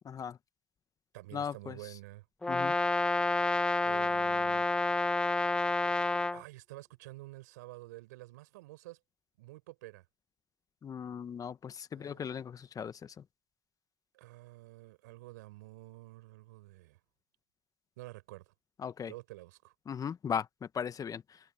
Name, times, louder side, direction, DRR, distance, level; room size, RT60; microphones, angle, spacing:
voice 1, 0.0-0.4 1.3-1.7 2.5-2.7 10.8-12.9 18.8-19.1 19.9-20.5 20.7-21.2, left 7 dB, 40° left, 1.3 m, -37 dB
voice 2, 1.1-2.3 3.9-4.7 5.9-6.0 6.3-9.0 9.4-10.0 11.9-12.2 14.1-17.0 18.0-18.5 19.1-19.7, right 20 dB, 85° right, 5.1 m, -49 dB
Brass instrument, 2.4-6.4, left 2 dB, 10° left, 0.3 m, -29 dB
hypercardioid pair, 70°, 9 cm